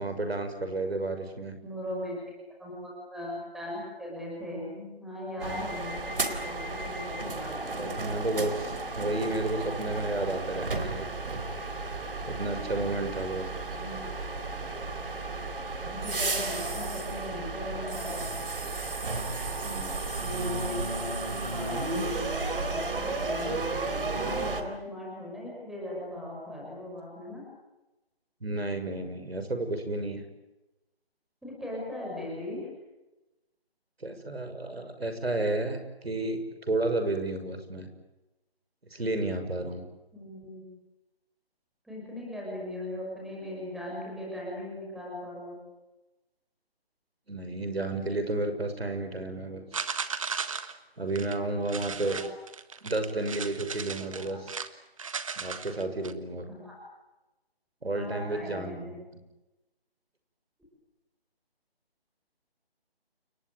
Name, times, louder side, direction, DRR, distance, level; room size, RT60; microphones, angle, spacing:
voice 1, 0.0-1.6 5.4-5.6 7.8-11.1 12.3-13.5 19.6-20.0 28.4-30.3 34.0-37.9 38.9-39.8 47.3-49.6 51.0-52.2 52.8-54.5 55.4-56.5 57.8-58.9, right 2 dB, 75° right, 7 dB, 6.2 m, -32 dB
voice 2, 1.6-2.2 2.6-8.2 13.7-14.1 15.8-18.2 20.2-23.9 24.1-27.4 31.4-32.6 40.1-40.6 41.8-45.6 52.1-52.2 54.2-54.3 56.5-56.8 57.9-58.9, left 1 dB, ahead, -4 dB, 5.9 m, -39 dB
sound 1, 5.4-24.6, right 3 dB, 60° right, 4.0 m, -33 dB
sound 2, 49.7-50.8 51.1-51.4 51.7-54.7 55.0-56.1, right 5 dB, 35° right, 1.5 m, -36 dB
29.5 x 18.5 x 9.3 m, 1.0 s
figure-of-eight pair, 160°, 31 cm